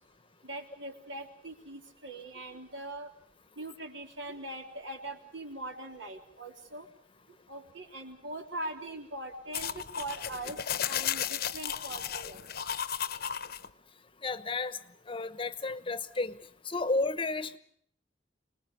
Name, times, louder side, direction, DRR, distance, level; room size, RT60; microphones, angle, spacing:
voice 1, 0.4-3.1 3.6-6.9 7.5-10.6 10.9-12.4, right 2 dB, 80° right, 3 dB, 3.6 m, -41 dB
sound 1, 9.5-13.7, left 9 dB, 55° left, 0.9 m, -34 dB
voice 2, 14.2-14.8 15.1-16.4 16.7-17.6, left 3 dB, 30° left, 13 dB, 0.9 m, -32 dB
25.5 x 20.0 x 6.8 m, 0.64 s
head